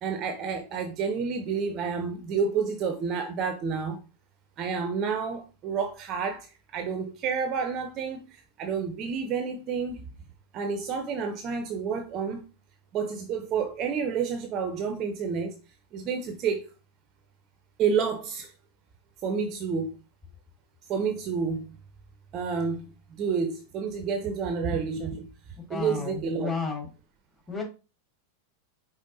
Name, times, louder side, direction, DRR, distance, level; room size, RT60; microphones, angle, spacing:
voice 1, 0.0-4.0 4.6-10.1 10.5-12.4 12.9-15.6 15.9-16.7 17.8-18.5 19.2-19.9 20.9-21.7 22.3-25.3 25.7-26.6, right 6 dB, 35° right, 0.5 m, -29 dB
voice 2, 25.7-26.9 27.5-27.6, left 4 dB, 15° left, 1.6 m, -32 dB
5.1 x 3.6 x 2.6 m
figure-of-eight pair, 90°, 0 cm